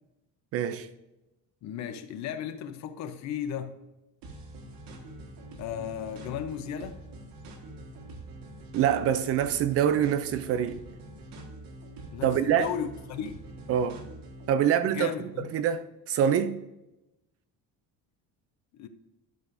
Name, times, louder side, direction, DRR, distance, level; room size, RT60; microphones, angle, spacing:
voice 1, 0.5-0.9 8.7-10.8 12.2-12.7 13.7-14.0 14.5-16.6, right 9 dB, 45° right, 0.4 m, -25 dB
voice 2, 1.6-3.7 5.6-7.0 12.1-13.4 14.9-15.5 18.7-18.9, left 9 dB, 50° left, 0.7 m, -35 dB
sound 1, 4.2-14.5, right 1 dB, 75° right, 1.6 m, -45 dB
11.5 x 6.2 x 2.6 m
cardioid pair, 180°, 35 cm